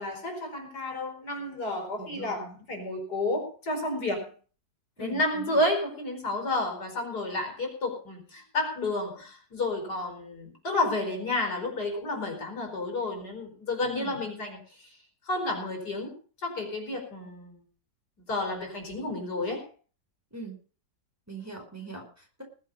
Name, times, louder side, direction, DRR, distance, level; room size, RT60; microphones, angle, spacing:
voice 1, 0.0-4.3 5.0-14.9 15.3-16.1 16.4-17.6 18.3-19.7, left 2 dB, 65° left, 4 dB, 5.1 m, -31 dB
voice 2, 2.0-2.4 5.0-5.6 13.9-14.2 20.3-20.6 21.3-22.4, right 3 dB, 10° right, 1 dB, 5.0 m, -41 dB
20.5 x 7.7 x 5.3 m, 0.39 s
omnidirectional pair, 1.9 m